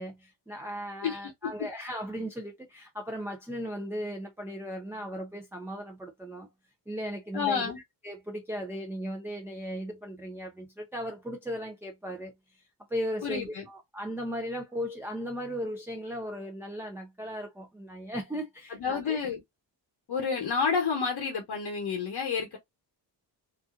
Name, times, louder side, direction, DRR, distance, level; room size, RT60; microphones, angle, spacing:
voice 1, 0.0-6.5 6.9-7.7 8.0-19.3, equal, 5° right, 0.5 m, -37 dB
voice 2, 7.3-7.8 13.2-13.7 18.7-19.4 20.1-22.6, left 6 dB, 60° left, 0.8 m, -29 dB
2.6 x 2.3 x 2.3 m
cardioid pair, 90°, 45 cm